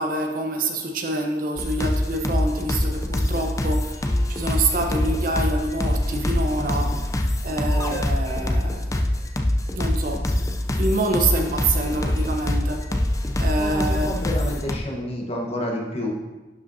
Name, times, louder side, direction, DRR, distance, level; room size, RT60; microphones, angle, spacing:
voice 1, 0.0-7.0 7.4-8.8 9.7-10.5 10.8-12.8 13.4-14.6, right 2 dB, 50° right, 3 dB, 0.8 m, -26 dB
sound 1, 1.6-14.8, left 1 dB, 20° left, 0.5 m, -24 dB
voice 2, 13.6-16.1, left 1 dB, 35° left, -1 dB, 1.1 m, -29 dB
11.5 x 5.1 x 2.7 m, 1.2 s
head